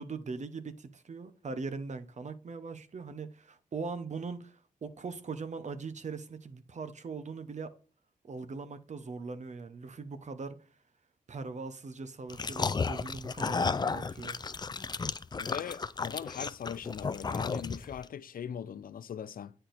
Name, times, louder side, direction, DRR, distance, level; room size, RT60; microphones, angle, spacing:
voice 1, 0.0-7.7 8.2-10.6 11.3-14.4, right 4 dB, 55° right, 0.9 m, -40 dB
sound 1, 12.3-18.0, left 4 dB, 30° left, 0.4 m, -33 dB
voice 2, 15.4-19.5, left 8 dB, 90° left, 0.5 m, -40 dB
9.7 x 4.4 x 2.6 m
wide cardioid pair, 90°, 14 cm